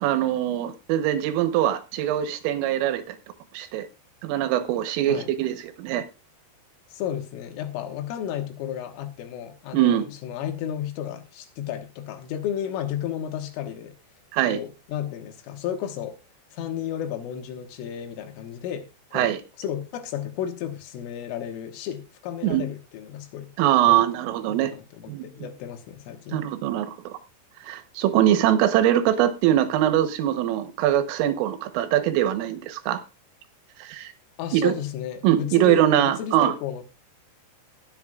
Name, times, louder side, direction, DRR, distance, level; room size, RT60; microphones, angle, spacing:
voice 1, 0.0-3.2 3.5-3.9 4.2-6.0 9.7-10.0 14.3-14.6 19.1-19.4 22.4-22.6 23.6-24.7 25.1-25.3 26.3-27.2 27.7-33.0 33.8-34.1 34.5-34.8 35.2-36.5, right 12 dB, 85° right, 3.7 m, -22 dB
voice 2, 6.9-13.9 14.5-16.2 16.5-23.5 23.9-24.0 24.5-26.5 34.4-36.8, left 10 dB, 85° left, 3.9 m, -33 dB
21.0 x 8.0 x 2.4 m
omnidirectional pair, 5.8 m